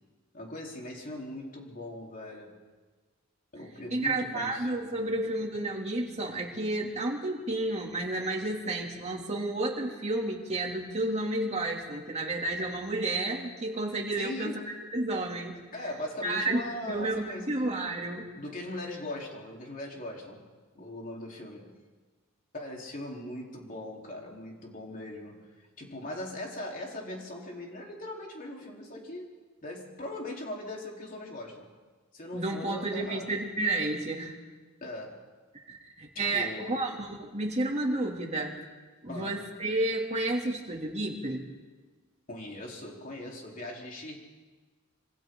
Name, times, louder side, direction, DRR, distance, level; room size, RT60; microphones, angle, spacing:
voice 1, 0.3-2.6 3.5-5.1 14.2-14.6 15.7-17.6 18.4-20.5 20.8-21.8 22.5-25.5 25.8-31.7 32.1-33.3 34.8-35.2 36.1-36.9 39.1-39.4 42.3-44.2, left 1 dB, 40° left, -2 dB, 3.8 m, -40 dB
voice 2, 3.9-15.6 16.2-16.6 16.9-18.3 32.3-34.4 35.7-38.6 39.0-41.5, right 2 dB, 30° right, -1 dB, 2.9 m, -31 dB
26.5 x 25.5 x 3.9 m, 1.3 s
head